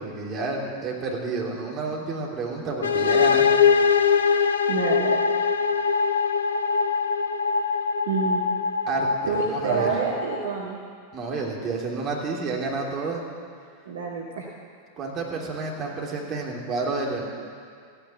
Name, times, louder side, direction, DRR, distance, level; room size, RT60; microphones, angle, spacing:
voice 1, 0.0-3.4 8.9-9.9 11.1-13.2 15.0-17.2, right 3 dB, 30° right, -2 dB, 3.3 m, -30 dB
sound 1, 2.8-10.5, left 6 dB, 70° left, 0.6 m, -22 dB
voice 2, 4.7-5.2 8.0-8.4 9.3-10.8 13.8-14.5, right 5 dB, 60° right, -2 dB, 1.6 m, -28 dB
14.5 x 10.0 x 8.0 m, 2.2 s
figure-of-eight pair, 90°, 0 cm